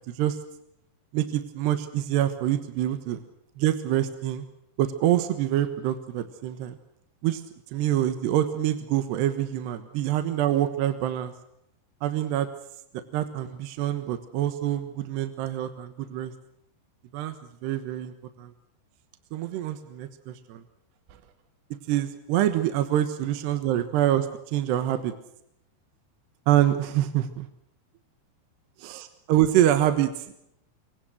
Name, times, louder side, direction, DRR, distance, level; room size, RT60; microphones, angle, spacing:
voice 1, 0.1-0.4 1.1-3.2 3.6-4.4 4.8-6.8 7.2-7.4 7.7-11.3 12.0-12.5 12.9-16.3 17.1-17.4 17.6-18.5 19.3-20.6 21.9-25.1 26.5-27.5 28.8-30.1, right 12 dB, 70° right, 10 dB, 3.3 m, -26 dB
26.5 x 23.5 x 6.3 m, 0.76 s
omnidirectional pair, 5.2 m